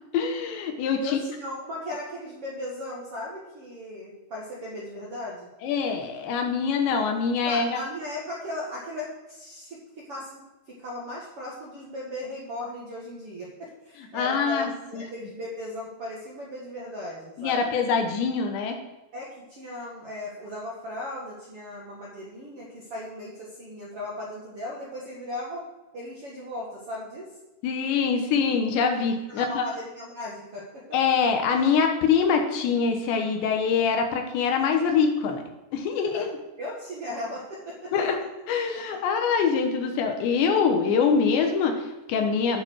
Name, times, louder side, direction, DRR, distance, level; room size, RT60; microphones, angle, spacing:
voice 1, 0.1-1.2 5.6-7.8 14.1-15.0 17.4-18.8 27.6-29.6 30.9-35.4 35.7-36.3 37.9-38.2 38.5-42.6, left 6 dB, 75° left, 4 dB, 3.4 m, -24 dB
voice 2, 1.0-5.5 7.4-17.7 19.1-25.6 25.9-27.3 29.3-31.0 36.1-37.9, left 1 dB, 50° right, -4 dB, 1.8 m, -37 dB
9.4 x 7.4 x 6.3 m, 1.0 s
omnidirectional pair, 5.2 m